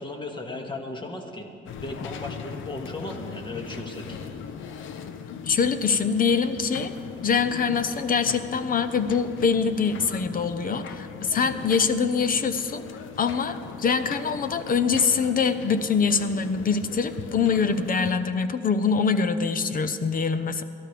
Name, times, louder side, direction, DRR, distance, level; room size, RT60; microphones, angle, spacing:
voice 1, 0.0-1.5 1.8-4.2, left 2 dB, 25° left, 2 dB, 1.9 m, -36 dB
sound 1, 1.7-18.1, left 7 dB, 80° left, 0.9 m, -39 dB
voice 2, 5.4-6.9 7.2-12.8 13.2-20.6, left 5 dB, 45° left, 11 dB, 0.8 m, -24 dB
22.0 x 13.0 x 3.4 m, 2.3 s
cardioid pair, 90°, 20 cm